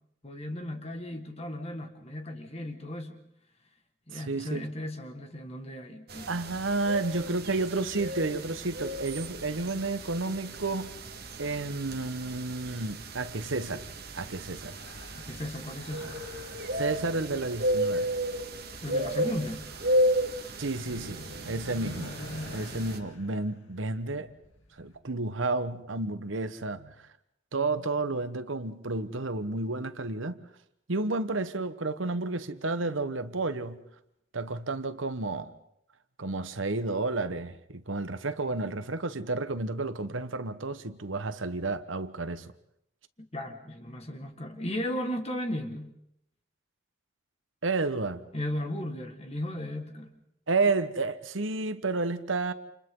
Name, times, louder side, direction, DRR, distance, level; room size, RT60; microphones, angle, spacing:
voice 1, 0.2-3.2 4.1-6.3 15.2-16.3 18.8-19.6 43.2-45.9 48.3-50.2, left 1 dB, 30° left, 1.8 m, -36 dB
voice 2, 4.1-4.7 6.3-10.9 11.4-13.9 14.1-14.7 16.7-18.1 20.6-22.2 22.5-24.3 24.8-26.9 27.5-30.4 30.9-33.8 34.3-35.5 36.2-42.5 47.6-48.2 50.5-52.5, right 3 dB, 75° right, 1.2 m, -31 dB
sound 1, 6.1-23.0, right 1 dB, 50° right, 1.9 m, -34 dB
sound 2, 11.1-24.9, left 1 dB, 85° left, 2.5 m, -48 dB
29.5 x 28.5 x 3.9 m
head